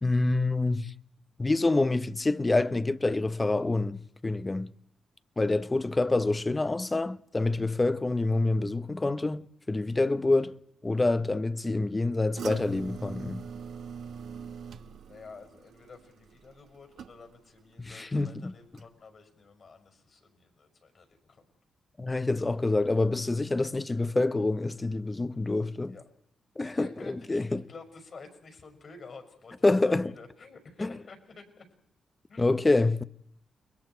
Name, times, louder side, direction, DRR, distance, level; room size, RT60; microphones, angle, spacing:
voice 1, 0.0-0.9 1.4-4.7 5.4-13.4 17.8-18.5 22.0-26.0 26.6-26.9 27.3-27.6 29.6-30.1 30.8-30.9 32.4-33.0, left 2 dB, 25° left, 1.0 m, -27 dB
sound 1, 12.4-17.6 17.9-18.4 18.8-18.9, right 6 dB, 80° right, 1.4 m, -43 dB
voice 2, 15.1-21.5 25.9-26.0 26.6-31.7 32.3-32.5, left 4 dB, 60° left, 5.7 m, -50 dB
29.5 x 21.5 x 4.6 m
supercardioid pair, 50°, 0 cm